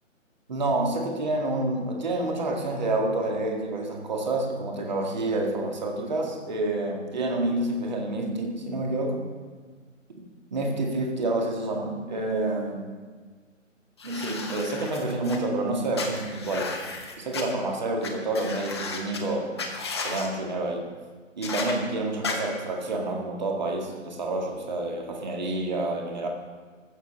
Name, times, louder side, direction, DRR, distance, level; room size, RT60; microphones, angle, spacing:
voice 1, 0.5-9.3 10.5-12.9 14.0-16.7 17.2-19.5 20.0-20.9 21.4-26.3, right 2 dB, 35° right, 1 dB, 2.1 m, -28 dB
sound 1, 14.0-15.4 15.9-17.4 18.0-18.1 18.3-19.2 19.6-20.3 21.4-21.7 22.2-22.3, left 4 dB, 20° left, 1.0 m, -34 dB
14.5 x 7.2 x 6.2 m, 1.5 s
figure-of-eight pair, 150°, 39 cm